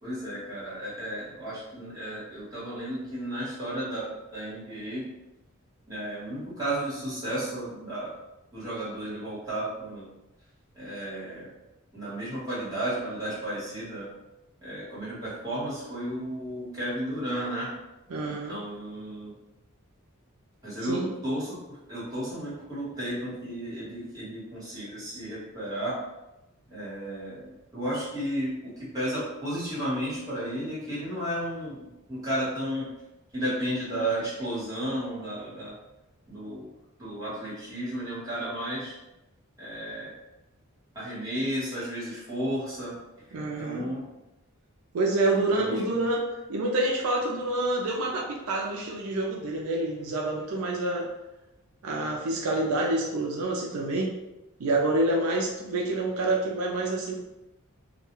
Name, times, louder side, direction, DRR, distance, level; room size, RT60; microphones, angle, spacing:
voice 1, 0.0-5.0 5.9-8.1 8.5-10.1 10.7-11.5 11.9-14.1 14.6-17.7 18.3-19.3 20.6-25.9 26.7-32.9 33.3-35.7 36.3-36.7 37.0-39.0 39.6-40.1 40.9-43.0 43.6-44.0 45.5-46.0, right 1 dB, 15° right, -10 dB, 1.2 m, -33 dB
voice 2, 18.1-18.6 20.9-21.1 43.3-43.9 44.9-51.1 51.8-54.1 54.6-57.2, right 2 dB, 85° right, -1 dB, 0.4 m, -27 dB
2.3 x 2.2 x 3.0 m, 0.96 s
head